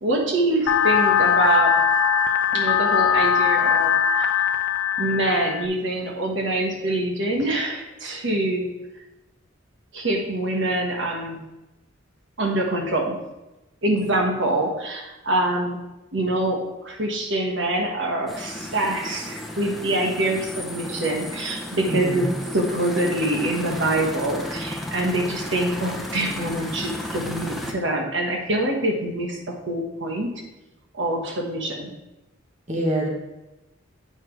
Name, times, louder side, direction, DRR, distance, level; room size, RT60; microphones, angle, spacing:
voice 1, 0.0-1.7 2.5-4.6 5.0-8.7 9.9-11.4 12.4-13.2 13.8-15.8 16.1-22.3 22.5-30.3 30.9-31.9, right 1 dB, 70° right, 0 dB, 1.4 m, -25 dB
sound 1, 0.7-5.7, left 8 dB, 75° left, 0.5 m, -20 dB
sound 2, 18.3-27.7, left 1 dB, ahead, 0.8 m, -34 dB
voice 2, 21.9-22.4 32.7-33.1, right 1 dB, 35° right, 0 dB, 1.2 m, -25 dB
8.1 x 5.9 x 4.6 m, 0.99 s
head